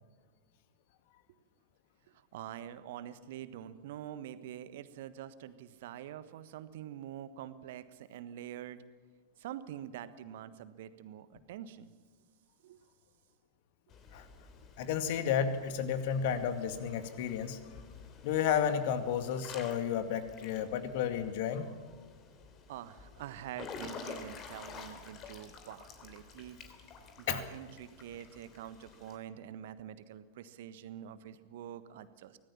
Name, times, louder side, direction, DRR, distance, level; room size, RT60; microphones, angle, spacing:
voice 1, 2.1-8.8 9.4-11.9 12.6-12.8 22.7-26.6 27.2-32.4, right 11 dB, 55° right, 13 dB, 1.3 m, -46 dB
Water / Splash splatter / Drip, 13.9-29.2, left 5 dB, 30° left, 3.0 m, -51 dB
voice 2, 14.8-17.6 18.2-21.7 27.3-27.4, left 8 dB, 50° left, 9 dB, 2.1 m, -32 dB
24.5 x 18.0 x 7.2 m, 1.4 s
figure-of-eight pair, 90°, 0 cm